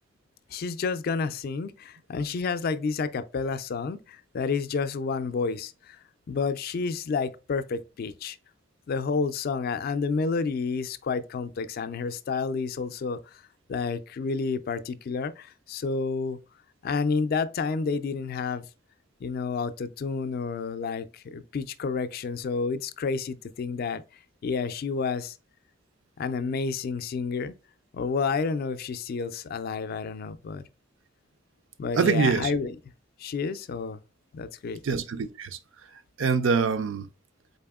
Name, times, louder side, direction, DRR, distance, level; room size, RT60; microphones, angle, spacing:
voice 1, 0.5-6.0 6.3-8.4 8.9-13.4 13.7-16.4 16.8-18.7 19.2-24.0 24.4-25.4 26.2-27.5 27.9-30.6 31.8-32.8 33.2-34.0 34.3-34.8, left 4 dB, 50° left, 0.3 m, -30 dB
voice 2, 32.0-32.5 34.8-35.6 36.2-37.1, right 5 dB, 75° right, 0.4 m, -24 dB
4.1 x 3.4 x 2.2 m
head